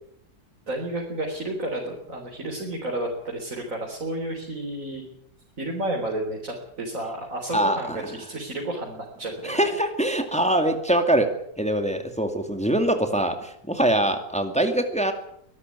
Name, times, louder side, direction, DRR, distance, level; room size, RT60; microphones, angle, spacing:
voice 1, 0.7-5.2 5.6-9.8, right 1 dB, 55° right, 0 dB, 4.2 m, -31 dB
voice 2, 7.5-8.1 9.4-11.3 11.6-15.1, right 1 dB, 5° left, 6 dB, 2.3 m, -23 dB
23.0 x 13.0 x 9.6 m, 0.74 s
omnidirectional pair, 1.7 m